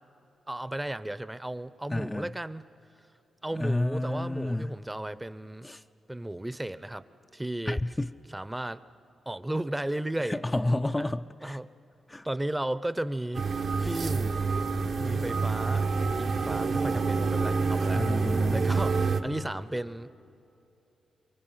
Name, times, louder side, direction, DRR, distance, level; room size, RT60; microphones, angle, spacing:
voice 1, 0.5-2.6 3.4-5.7 6.1-7.0 7.3-7.8 8.3-8.8 9.3-10.4 11.0-11.1 11.4-11.7 12.2-13.5 13.8-14.7 15.0-18.0 18.5-20.1, right 1 dB, 15° right, 0.7 m, -34 dB
voice 2, 1.9-2.3 3.5-4.8 5.6-5.8 7.7-8.1 10.3-11.6 12.1-12.3 13.8-13.9 17.9-18.6, left 1 dB, 20° left, 0.5 m, -30 dB
sound 1, 13.3-19.2, right 4 dB, 70° right, 1.2 m, -27 dB
28.5 x 23.0 x 5.7 m
cardioid pair, 55°, 0 cm